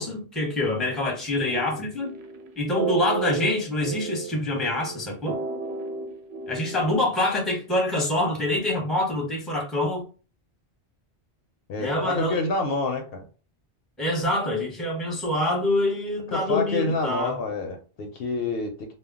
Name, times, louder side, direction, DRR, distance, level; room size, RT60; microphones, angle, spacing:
voice 1, 0.0-2.1 2.6-5.4 6.5-10.0 11.8-12.4 14.0-17.4, left 1 dB, ahead, 0.6 m, -26 dB
sound 1, 1.4-6.9, right 6 dB, 75° right, 0.8 m, -32 dB
voice 2, 11.7-13.2 16.3-18.7, left 3 dB, 65° left, 0.7 m, -28 dB
2.2 x 2.1 x 3.5 m
omnidirectional pair, 1.1 m